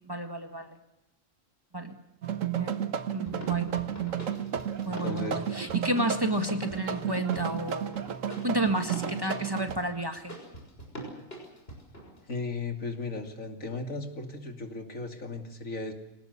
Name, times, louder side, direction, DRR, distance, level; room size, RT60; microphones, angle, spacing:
voice 1, 0.1-0.8 1.7-2.0 2.5-2.8 3.1-3.7 4.9-8.0 8.4-10.4, right 1 dB, 15° right, 5 dB, 1.8 m, -31 dB
sound 1, 2.2-9.8, right 9 dB, 70° right, 1.5 m, -33 dB
sound 2, 3.2-12.3, right 1 dB, 45° left, 6.5 m, -44 dB
voice 2, 4.8-5.4 12.3-15.9, left 3 dB, 75° left, 4 dB, 3.1 m, -36 dB
25.0 x 18.5 x 8.2 m, 0.93 s
omnidirectional pair, 1.4 m